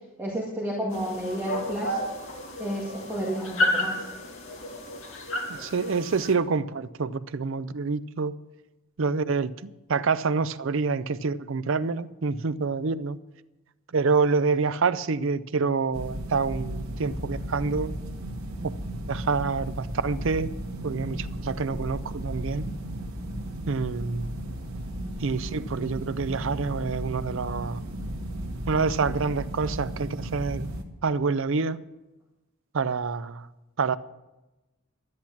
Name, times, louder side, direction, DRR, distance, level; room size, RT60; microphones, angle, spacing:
voice 1, 0.2-2.1 2.6-4.1, right 1 dB, 10° right, 2.0 m, -31 dB
sound 1, 0.9-6.3, left 1 dB, 65° left, 2.5 m, -31 dB
voice 2, 5.5-8.3 9.0-13.2 13.9-17.9 18.6-18.7 19.1-20.5 20.8-22.7 23.7-24.3 25.2-27.8 28.7-30.7 31.0-31.8 32.7-33.5 33.8-34.0, right 4 dB, 60° right, 0.5 m, -27 dB
sound 2, 15.9-30.8, right 1 dB, 75° right, 1.6 m, -35 dB
12.0 x 10.5 x 6.0 m
head